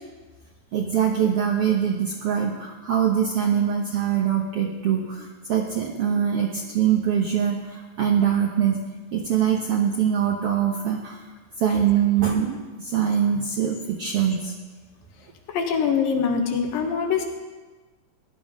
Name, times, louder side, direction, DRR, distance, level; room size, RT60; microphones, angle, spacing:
voice 1, 0.7-8.8 9.1-11.2 11.6-14.5, right 8 dB, 70° right, 1 dB, 1.4 m, -23 dB
voice 2, 15.5-17.2, left 6 dB, 75° left, 2 dB, 3.1 m, -23 dB
17.5 x 11.0 x 5.2 m, 1.3 s
omnidirectional pair, 4.1 m